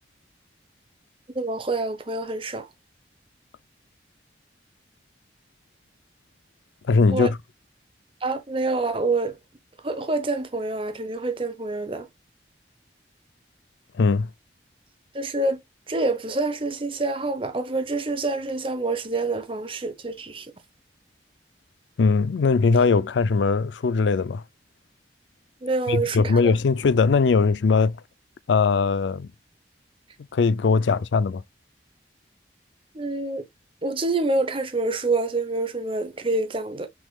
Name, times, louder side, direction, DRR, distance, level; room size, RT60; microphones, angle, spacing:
voice 1, 1.3-2.7 7.1-7.3 8.2-9.4 9.8-12.1 15.1-15.6 15.9-20.5 25.6-26.5 32.9-33.4 33.8-36.9, right 2 dB, 30° right, 0.8 m, -27 dB
voice 2, 6.9-7.4 13.9-14.3 22.0-24.4 25.9-28.0 28.5-29.3 30.3-31.4, left 4 dB, 85° left, 0.4 m, -20 dB
6.1 x 3.6 x 2.3 m
head